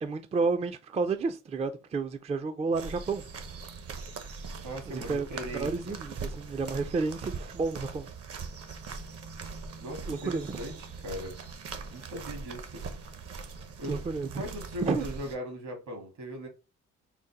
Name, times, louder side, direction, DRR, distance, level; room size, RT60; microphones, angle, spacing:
voice 1, 0.0-3.2 4.9-5.3 5.5-8.1 10.1-10.6 13.9-14.3 14.8-15.0, right 4 dB, 20° right, 0.4 m, -31 dB
sound 1, 2.7-15.4, right 4 dB, 50° right, 0.8 m, -41 dB
voice 2, 4.6-6.0 9.8-11.4 11.9-12.8 13.8-14.0 14.3-16.5, equal, 70° right, 1.7 m, -39 dB
3.9 x 2.1 x 4.0 m
cardioid pair, 90°, 30 cm